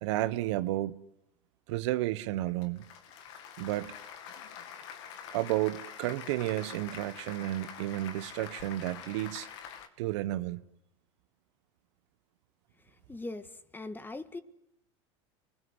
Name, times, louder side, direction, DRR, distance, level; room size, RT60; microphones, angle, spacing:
voice 1, 0.0-1.0 1.7-2.8 3.6-4.0 5.3-9.5 10.0-10.6, right 16 dB, 75° right, 1.1 m, -32 dB
Applause, 2.5-9.9, left 8 dB, 75° left, 2.3 m, -46 dB
voice 2, 13.1-14.4, left 2 dB, 15° left, 1.7 m, -40 dB
28.5 x 21.0 x 9.8 m
hypercardioid pair, 95°, 15 cm